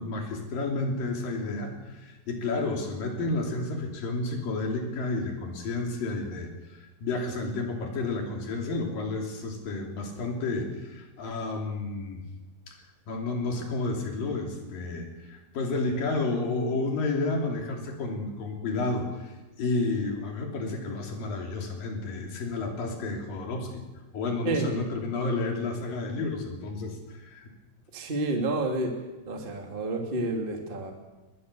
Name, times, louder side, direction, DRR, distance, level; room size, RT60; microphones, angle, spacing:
voice 1, 0.0-12.2 12.7-12.8 13.1-23.8 24.1-27.5, left 3 dB, 50° left, 2 dB, 4.6 m, -31 dB
voice 2, 27.9-28.9 29.2-30.9, right 2 dB, 20° right, 2 dB, 1.3 m, -29 dB
22.0 x 20.5 x 7.0 m, 1.1 s
omnidirectional pair, 5.7 m